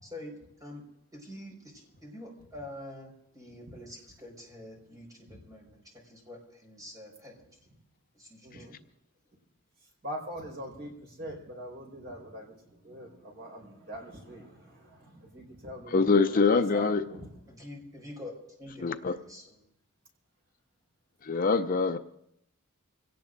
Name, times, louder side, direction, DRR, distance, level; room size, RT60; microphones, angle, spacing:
voice 1, 0.0-0.8 1.1-7.4 8.1-8.8 17.5-19.6, left 1 dB, 15° right, 0 dB, 5.0 m, -46 dB
voice 2, 8.4-8.8 10.0-17.3, equal, 50° right, 0 dB, 4.8 m, -43 dB
voice 3, 15.9-17.0 18.8-19.1 21.2-22.0, left 4 dB, 40° left, 9 dB, 0.5 m, -24 dB
26.5 x 18.0 x 2.6 m, 0.74 s
head